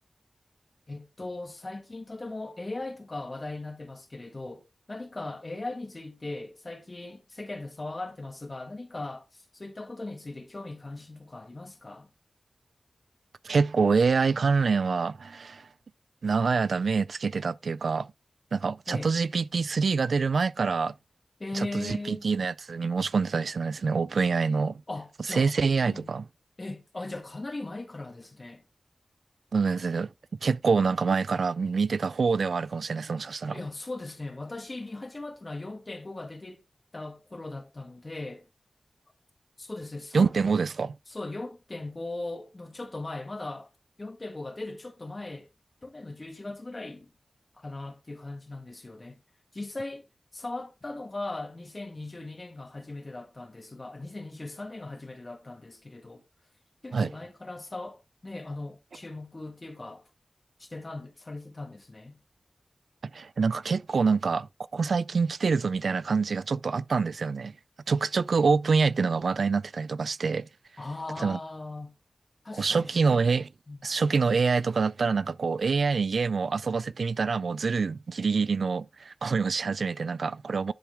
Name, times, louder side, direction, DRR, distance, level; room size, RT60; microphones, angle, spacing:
voice 1, 0.9-12.1 18.9-19.1 21.4-22.3 24.9-25.5 25.8-26.1 26.6-28.6 33.5-36.6 36.9-38.5 39.6-40.3 41.1-43.7 44.0-45.5 45.8-47.1 47.6-49.2 49.5-50.1 50.3-56.2 56.8-60.1 60.6-62.2 70.8-71.9 72.4-73.0 73.7-73.8, left 2 dB, 35° left, 1.8 m, -39 dB
voice 2, 13.4-15.7 16.2-18.1 18.5-20.9 21.5-24.8 25.3-26.3 29.5-30.1 30.4-33.6 40.1-40.9 56.9-57.1 63.1-64.5 64.7-67.5 67.9-70.5 71.2-71.4 72.5-73.5 73.8-80.7, right 5 dB, 80° right, 0.3 m, -26 dB
10.0 x 4.6 x 3.3 m
wide cardioid pair, 75°, 0 cm